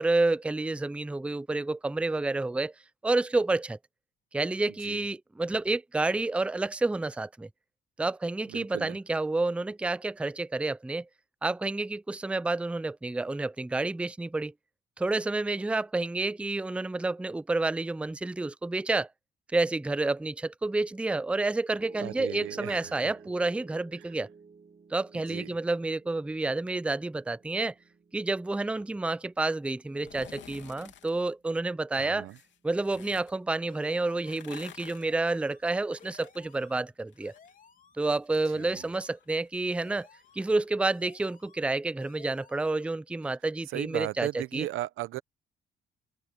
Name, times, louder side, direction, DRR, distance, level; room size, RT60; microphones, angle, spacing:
voice 1, 0.0-2.7 3.0-3.8 4.3-7.5 8.0-11.1 11.4-14.5 15.0-19.1 19.5-24.3 24.9-27.7 28.1-32.3 32.6-37.3 38.0-40.1 40.3-44.3 44.5-44.7, right 2 dB, 5° right, 0.5 m, -29 dB
voice 2, 8.5-9.0 22.0-23.2 24.0-24.1 25.1-25.6 32.0-32.4 38.4-38.9 43.7-45.2, right 15 dB, 85° right, 1.0 m, -37 dB
Piano, 21.8-34.0, right 5 dB, 35° right, 3.8 m, -54 dB
sound 1, 29.9-31.1 32.3-33.3 34.1-37.5 37.8-41.3 41.6-41.7, left 10 dB, 70° left, 3.2 m, -52 dB
sound 2, 33.7-34.5 34.9-35.7 36.0-36.9 37.2-38.1 38.4-39.2 39.7-40.5 40.9-41.7 42.0-42.9, left 6 dB, 45° left, 3.3 m, -57 dB
cardioid pair, 90°, 20 cm